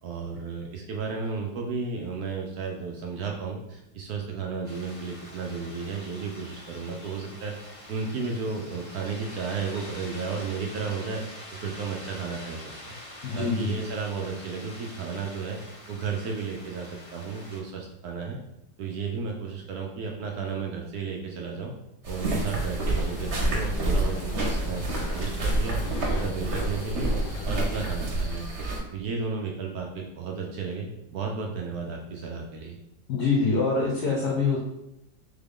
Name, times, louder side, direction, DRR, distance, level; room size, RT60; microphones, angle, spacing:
voice 1, 0.0-7.5 7.9-11.2 11.5-13.0 13.3-15.6 15.9-18.4 18.8-21.7 22.1-25.8 26.1-27.2 27.5-28.5 28.9-32.8, right 5 dB, 70° right, 1 dB, 0.9 m, -33 dB
sound 1, 4.6-17.6, left 1 dB, 30° left, 1.2 m, -45 dB
voice 2, 13.2-13.8 33.1-34.6, left 4 dB, 65° left, -2 dB, 1.1 m, -25 dB
sound 2, 22.0-28.8, right 2 dB, 45° right, 1.0 m, -28 dB
sound 3, 22.8-27.9, left 5 dB, 90° left, 0.7 m, -39 dB
3.7 x 3.5 x 3.6 m, 0.85 s
omnidirectional pair, 2.1 m